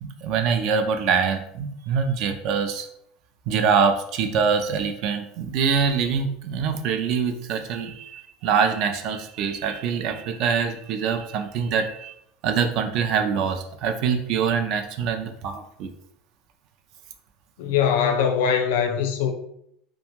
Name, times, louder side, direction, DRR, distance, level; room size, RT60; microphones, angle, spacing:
voice 1, 0.0-2.9 3.5-12.1 12.4-15.9, right 6 dB, 55° right, 0.4 m, -24 dB
voice 2, 17.6-19.3, left 7 dB, 80° left, 0.4 m, -22 dB
2.5 x 2.2 x 3.0 m
supercardioid pair, 140°, 0 cm